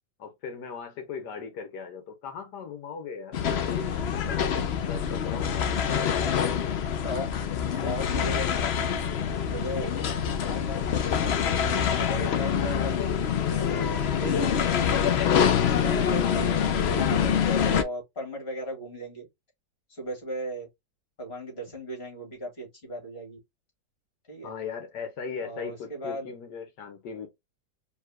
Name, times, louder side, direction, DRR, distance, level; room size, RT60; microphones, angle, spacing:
voice 1, 0.2-3.4 3.7-5.8 24.4-27.3, left 6 dB, 85° left, 1.5 m, -38 dB
sound 1, 3.3-17.8, left 8 dB, 65° left, 0.6 m, -25 dB
voice 2, 5.7-6.5 7.0-7.3 7.7-8.7 9.5-9.9 10.2-13.0 13.5-14.3 15.6-16.6 16.8-19.3 19.9-20.7 21.2-23.4 24.3-24.5 25.4-26.3, right 1 dB, 35° left, 2.6 m, -37 dB
4.7 x 3.3 x 2.3 m
omnidirectional pair, 1.8 m